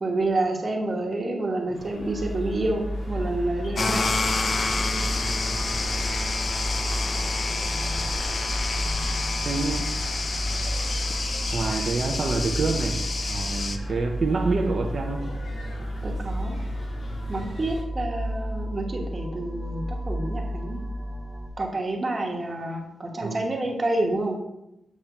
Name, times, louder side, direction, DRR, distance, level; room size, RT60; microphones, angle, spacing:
voice 1, 0.0-4.1 16.0-16.6 17.3-20.8 21.6-24.4, right 2 dB, 30° right, 1 dB, 1.0 m, -28 dB
sound 1, 1.7-17.8, left 1 dB, 50° left, 1.5 m, -42 dB
sound 2, 2.0-21.5, equal, 5° left, 1.0 m, -31 dB
sound 3, 3.8-13.8, left 3 dB, 35° left, 0.5 m, -29 dB
voice 2, 9.5-10.0 11.5-15.3 23.2-23.5, right 4 dB, 45° right, 3 dB, 0.5 m, -27 dB
7.3 x 3.2 x 5.7 m, 0.87 s
wide cardioid pair, 170°, 0 cm